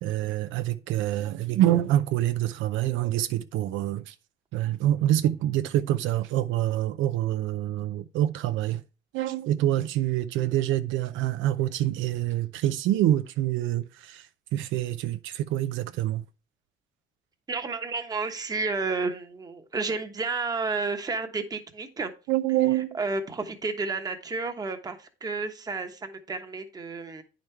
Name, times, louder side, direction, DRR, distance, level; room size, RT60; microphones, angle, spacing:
voice 1, 0.0-4.1 4.5-8.8 9.1-16.2 22.3-23.0, right 13 dB, 75° right, 0.6 m, -26 dB
voice 2, 17.5-22.1 22.7-27.2, right 4 dB, 20° right, 1.1 m, -31 dB
9.6 x 5.2 x 4.4 m
cardioid pair, 165°, 20 cm